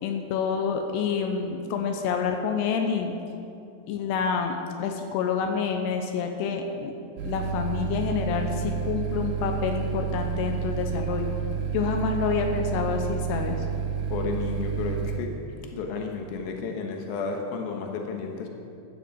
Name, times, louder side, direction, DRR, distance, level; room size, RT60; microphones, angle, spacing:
voice 1, 0.0-3.1 3.9-6.9 7.2-11.3 11.7-13.6, left 6 dB, 90° left, 4 dB, 3.0 m, -28 dB
sound 1, 7.2-15.2, right 7 dB, 90° right, 3.0 m, -30 dB
voice 2, 14.1-15.3 15.7-18.5, left 4 dB, 70° left, 2 dB, 3.0 m, -32 dB
13.0 x 8.1 x 8.0 m, 2.6 s
omnidirectional pair, 4.6 m